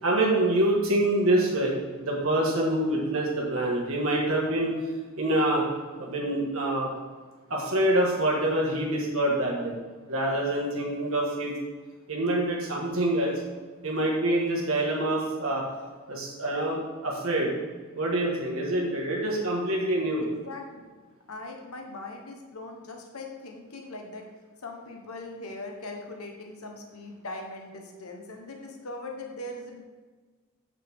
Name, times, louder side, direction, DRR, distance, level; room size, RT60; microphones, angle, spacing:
voice 1, 0.0-4.7 5.2-5.6 6.0-6.9 7.5-9.8 10.1-11.5 12.1-13.4 13.8-15.6 16.1-17.5 17.9-20.2, right 1 dB, 65° right, -2 dB, 1.6 m, -26 dB
voice 2, 20.2-20.8 21.3-24.3 24.6-29.8, left 2 dB, 80° left, 2 dB, 1.2 m, -40 dB
8.8 x 6.6 x 3.6 m, 1.4 s
head